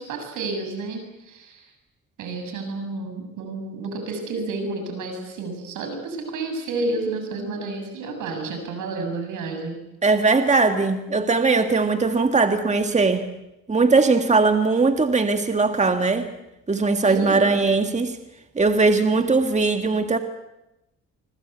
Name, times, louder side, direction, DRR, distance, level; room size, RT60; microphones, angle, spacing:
voice 1, 0.0-1.7 2.2-9.8 17.0-17.5, right 3 dB, 85° right, 5 dB, 7.7 m, -30 dB
voice 2, 10.0-13.3 13.7-16.3 16.7-18.1 18.6-20.2, right 3 dB, 25° right, 7 dB, 1.9 m, -20 dB
25.5 x 24.5 x 8.2 m, 0.93 s
cardioid pair, 90°, 30 cm